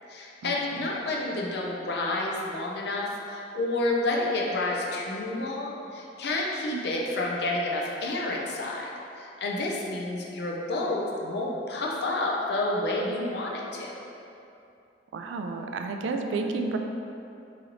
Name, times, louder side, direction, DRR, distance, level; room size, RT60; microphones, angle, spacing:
voice 1, 0.1-13.9, left 2 dB, 60° left, -2 dB, 0.5 m, -30 dB
voice 2, 15.1-16.8, right 4 dB, 85° right, 4 dB, 0.3 m, -31 dB
3.1 x 2.9 x 3.8 m, 2.7 s
head